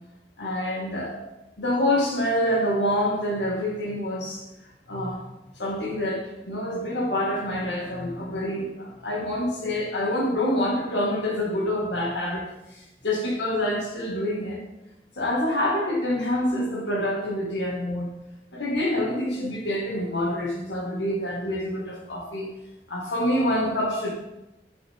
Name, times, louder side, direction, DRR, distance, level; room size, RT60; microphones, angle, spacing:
voice 1, 0.4-1.2 1.6-4.5 4.9-5.2 5.6-14.6 15.2-18.1 18.5-22.5 22.9-24.1, left 1 dB, 80° left, -2 dB, 2.0 m, -26 dB
7.8 x 7.0 x 3.7 m, 0.97 s
head